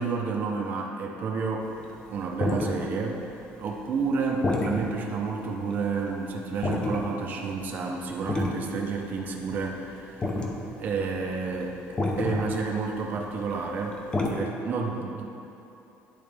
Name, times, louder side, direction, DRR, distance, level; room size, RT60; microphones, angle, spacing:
voice 1, 0.0-1.7 2.1-3.2 3.6-10.3 10.7-11.8 12.2-15.3, right 4 dB, 40° right, -1 dB, 0.6 m, -30 dB
sound 1, 1.6-5.8 6.0-6.2 6.5-7.2 7.5-7.9 8.2-13.5 13.7-14.3, left 2 dB, 20° left, 0.6 m, -30 dB
10.5 x 4.0 x 3.4 m, 2.9 s
cardioid pair, 165°, 5 cm